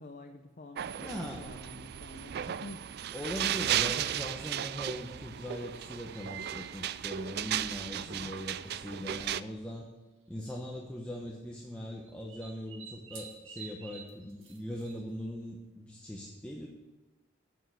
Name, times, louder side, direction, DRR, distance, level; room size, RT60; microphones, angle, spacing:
voice 1, 0.0-2.9 8.0-8.4, left 2 dB, 45° left, 3 dB, 0.7 m, -48 dB
sound 1, 0.8-9.4, right 10 dB, 55° right, 0.3 m, -35 dB
voice 2, 1.0-1.5 3.1-9.9 10.3-16.7, left 1 dB, 5° left, -2 dB, 0.9 m, -40 dB
sound 2, 4.1-4.4 5.7-7.0 7.2-8.2 9.2-9.3 9.4-9.5 10.5-10.8 12.0-15.2, right 6 dB, 80° right, 1.8 m, -51 dB
8.4 x 7.0 x 7.8 m, 1.1 s
head